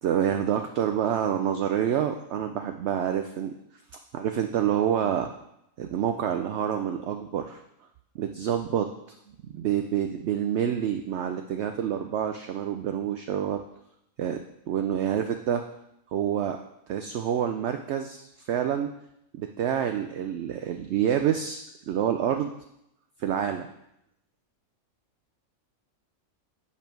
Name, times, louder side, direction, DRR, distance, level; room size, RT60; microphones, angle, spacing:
voice 1, 0.0-3.5 4.1-5.3 5.8-7.6 8.1-8.9 9.5-13.6 14.2-14.4 14.7-15.6 16.1-16.6 16.9-18.9 19.3-22.5 23.2-23.7, right 9 dB, 65° right, 6 dB, 0.7 m, -27 dB
8.5 x 5.3 x 4.5 m, 0.81 s
omnidirectional pair, 1.5 m